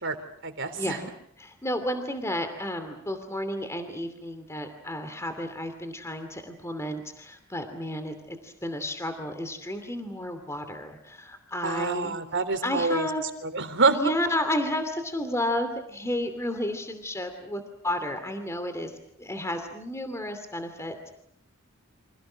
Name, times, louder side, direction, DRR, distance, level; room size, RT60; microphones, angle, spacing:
voice 1, 0.4-1.0 11.6-13.1 13.5-14.0, right 4 dB, 60° right, 9 dB, 3.4 m, -26 dB
voice 2, 1.4-12.2 12.6-13.2 13.9-18.9 19.2-21.1, left 1 dB, 15° left, 8 dB, 2.7 m, -32 dB
30.0 x 26.0 x 6.3 m, 0.72 s
head